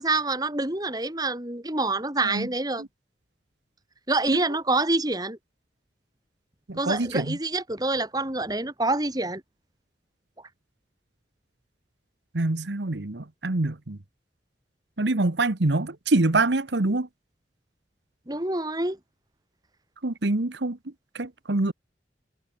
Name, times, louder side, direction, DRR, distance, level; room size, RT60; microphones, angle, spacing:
voice 1, 0.0-2.8 4.1-5.4 6.8-9.4 18.3-19.0, right 2 dB, 20° right, 3.0 m, -26 dB
voice 2, 6.7-7.4 12.3-14.0 15.0-17.1 20.0-20.8 21.1-21.7, right 2 dB, 85° right, 1.3 m, -25 dB
head